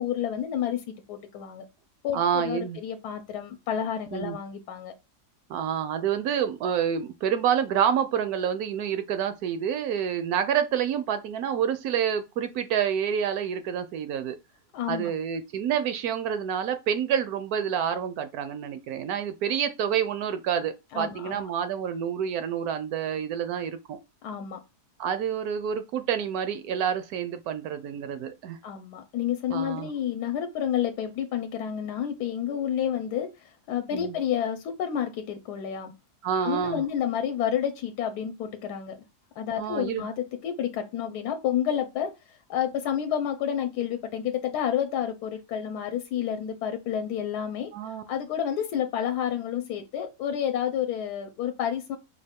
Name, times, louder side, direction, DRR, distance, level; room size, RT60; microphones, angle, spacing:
voice 1, 0.0-1.6 2.0-4.9 14.7-15.1 20.9-21.4 24.2-24.6 28.6-35.9 36.4-39.0 39.4-47.7 48.1-52.0, left 9 dB, 75° left, 1.1 m, -30 dB
voice 2, 2.1-2.8 4.1-4.4 5.5-14.4 14.9-24.0 25.0-28.6 29.5-29.9 33.9-34.2 36.2-36.9 39.6-40.1 47.7-48.0, right 8 dB, 75° right, 1.0 m, -28 dB
5.1 x 2.4 x 3.5 m
omnidirectional pair, 1.8 m